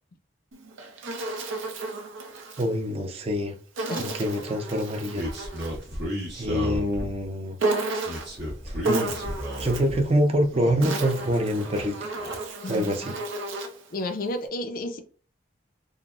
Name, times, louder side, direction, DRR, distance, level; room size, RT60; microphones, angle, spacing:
Insect, 0.5-2.7 3.8-5.8 7.6-8.4 8.8-10.0 10.6-13.9, right 2 dB, 80° right, 0.6 m, -32 dB
voice 1, 2.6-3.5 4.0-5.3 6.4-7.6 8.6-9.1 9.6-11.9 12.7-13.1, equal, 30° right, 0.4 m, -25 dB
voice 2, 3.9-4.3 12.6-13.0 13.9-15.0, left 1 dB, 45° left, 0.4 m, -32 dB
sound 1, 5.1-7.3 8.0-10.0 10.4-11.3 11.6-12.4, equal, 60° right, 1.1 m, -34 dB
3.7 x 2.0 x 2.4 m
head